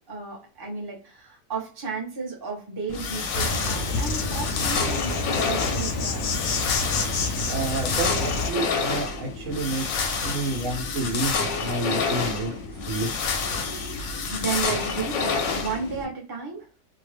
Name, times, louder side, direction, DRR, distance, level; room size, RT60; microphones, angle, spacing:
voice 1, 0.1-6.3 13.8-16.7, right 5 dB, 20° right, -3 dB, 0.7 m, -33 dB
sound 1, 2.9-16.1, left 5 dB, 85° left, 1.1 m, -28 dB
Insect, 3.3-8.5, left 3 dB, 65° left, 0.8 m, -28 dB
voice 2, 7.5-12.6 12.9-13.1 13.4-14.0, right 2 dB, 70° right, 0 dB, 1.1 m, -30 dB
2.8 x 2.2 x 3.2 m, 0.36 s
omnidirectional pair, 1.4 m